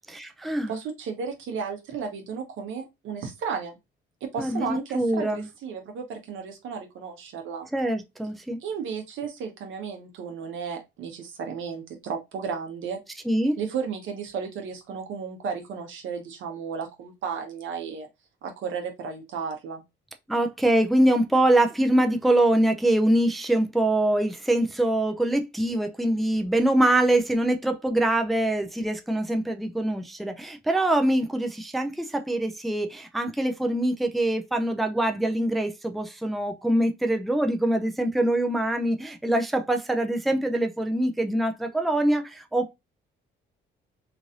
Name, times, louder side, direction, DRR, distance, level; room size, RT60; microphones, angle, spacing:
voice 1, 0.2-0.7 4.4-5.4 7.7-8.6 13.3-13.6 20.3-42.7, right 1 dB, ahead, 0.4 m, -24 dB
voice 2, 0.7-3.8 4.3-7.7 8.6-13.0 13.6-18.1 18.4-19.8, right 6 dB, 80° right, 1.0 m, -34 dB
3.1 x 2.5 x 2.5 m
cardioid pair, 90°, 20 cm